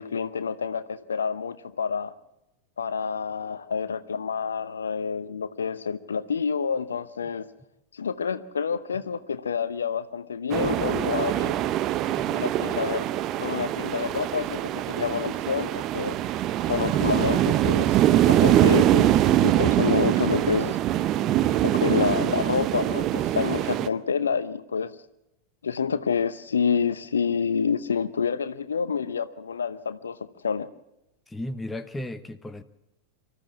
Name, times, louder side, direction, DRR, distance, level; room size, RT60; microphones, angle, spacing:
voice 1, 0.0-2.1 2.8-7.5 7.9-11.6 12.3-16.2 16.7-17.9 18.2-19.1 19.4-20.8 21.6-24.9 25.6-30.2 30.4-30.7, left 6 dB, 70° left, 14 dB, 0.8 m, -28 dB
sound 1, 10.5-23.9, right 12 dB, 35° right, 0.7 m, -23 dB
voice 2, 12.1-12.8 31.3-32.6, left 1 dB, 10° left, 10 dB, 1.0 m, -36 dB
25.0 x 14.0 x 7.4 m, 0.90 s
figure-of-eight pair, 90°, 0 cm